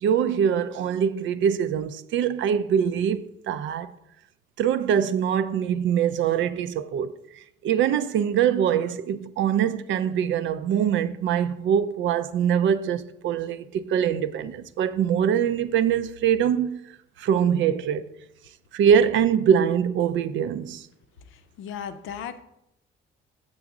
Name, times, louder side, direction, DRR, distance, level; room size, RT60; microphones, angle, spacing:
voice 1, 0.0-3.9 4.6-16.9 17.2-18.1 18.7-20.9, right 8 dB, 70° right, 0.4 m, -23 dB
voice 2, 21.6-22.4, left 8 dB, 85° left, 0.6 m, -35 dB
7.0 x 6.1 x 3.7 m
cardioid pair, 90°, 20 cm